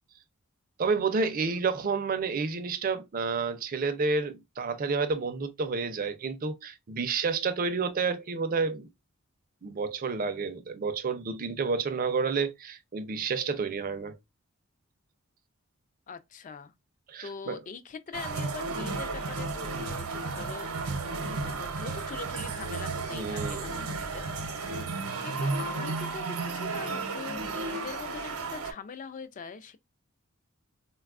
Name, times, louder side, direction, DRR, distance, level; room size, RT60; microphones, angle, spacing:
voice 1, 0.8-8.9 9.6-14.2 17.1-17.6 23.1-23.7, right 4 dB, 40° right, 0.4 m, -30 dB
voice 2, 16.1-16.7 17.2-20.7 21.1-29.8, left 5 dB, 35° left, 0.3 m, -43 dB
sound 1, 18.1-28.7, right 3 dB, 80° right, 0.7 m, -33 dB
3.9 x 2.3 x 2.3 m
head